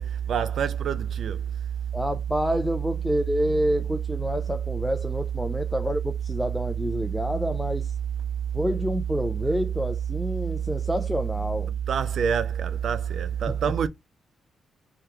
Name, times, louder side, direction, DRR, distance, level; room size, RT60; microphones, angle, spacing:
voice 1, 0.0-1.5 11.9-13.9, right 7 dB, 70° right, 0.3 m, -26 dB
voice 2, 1.9-7.9 8.5-11.7 13.5-13.6, equal, ahead, 0.4 m, -28 dB
3.2 x 2.4 x 2.8 m
cardioid pair, 70°, 0 cm